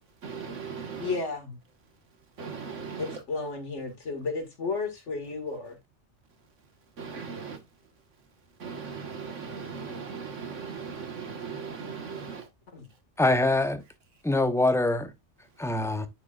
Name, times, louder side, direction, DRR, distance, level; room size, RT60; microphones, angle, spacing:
voice 1, 0.2-1.2 2.4-3.2 7.0-7.6 8.6-12.5, right 5 dB, 85° right, 1.9 m, -38 dB
voice 2, 1.0-1.6 3.0-5.8 12.7-12.9, left 4 dB, 75° left, 2.3 m, -33 dB
voice 3, 13.2-13.8 14.2-15.1 15.6-16.1, left 2 dB, 5° left, 0.7 m, -24 dB
9.1 x 6.8 x 2.4 m
omnidirectional pair, 1.2 m